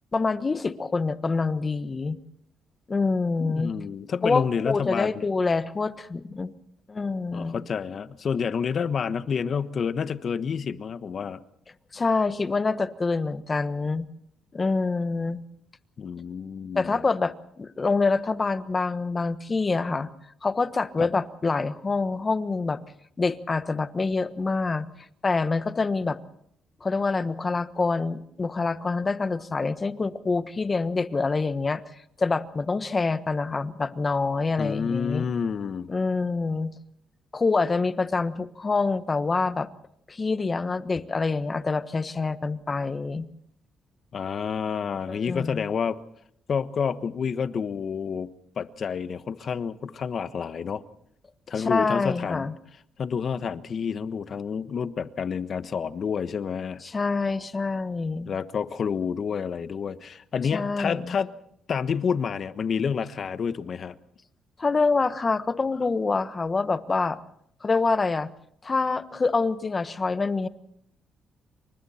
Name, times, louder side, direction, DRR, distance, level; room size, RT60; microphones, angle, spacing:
voice 1, 0.1-2.2 2.9-3.7 4.2-6.5 6.9-7.6 11.9-14.1 14.5-15.4 16.7-20.1 20.4-22.8 23.2-24.8 25.2-26.2 26.8-31.8 32.2-35.2 35.9-36.7 37.3-39.7 40.1-43.3 45.1-45.7 51.6-52.5 56.8-58.3 60.5-61.1 64.6-67.2 67.6-68.3 68.6-70.5, left 4 dB, 30° left, 1.3 m, -26 dB
voice 2, 3.4-5.2 7.3-11.4 16.0-17.0 21.0-21.1 34.6-35.9 44.1-46.0 46.5-48.3 48.6-50.8 51.5-52.5 53.0-56.8 58.2-61.3 61.7-63.9, left 6 dB, 50° left, 1.2 m, -29 dB
28.5 x 25.0 x 4.4 m
cardioid pair, 90°, 0 cm